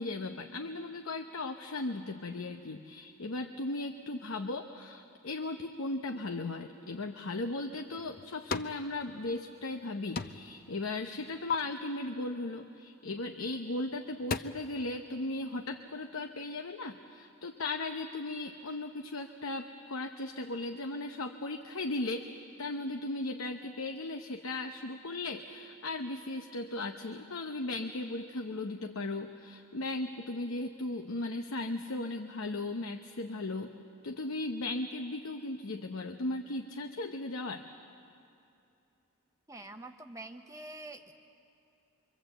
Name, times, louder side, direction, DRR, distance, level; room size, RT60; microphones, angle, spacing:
voice 1, 0.0-33.7 34.0-37.7, left 2 dB, 80° left, 5 dB, 0.9 m, -37 dB
sound 1, 7.7-8.8 9.2-9.9 10.1-10.6 10.9-11.5 13.4-13.5 14.0-14.4, left 5 dB, 45° left, 0.6 m, -37 dB
voice 2, 39.5-41.1, right 2 dB, 15° right, 5 dB, 0.8 m, -46 dB
25.0 x 24.5 x 7.9 m, 2.7 s
head